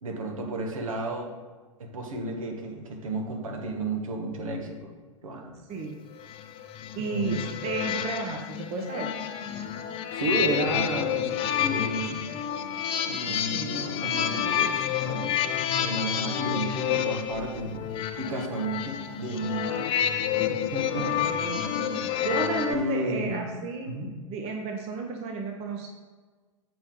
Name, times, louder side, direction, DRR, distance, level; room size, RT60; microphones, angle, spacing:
voice 1, 0.0-1.3 1.8-4.9 5.2-5.5 7.1-7.4 10.1-12.2 13.1-15.3 15.8-17.9 18.2-19.8 20.5-21.1 21.6-22.2 22.7-23.5 23.9-24.1, right 1 dB, 75° right, 1 dB, 1.6 m, -32 dB
voice 2, 5.7-6.0 6.9-9.2 13.2-14.0 21.0-21.7 22.2-23.9 24.3-25.9, right 3 dB, 35° right, 2 dB, 1.0 m, -33 dB
sound 1, 6.2-22.7, left 9 dB, 30° left, 0.6 m, -29 dB
8.0 x 5.3 x 3.8 m, 1.4 s
hypercardioid pair, 105°, 18 cm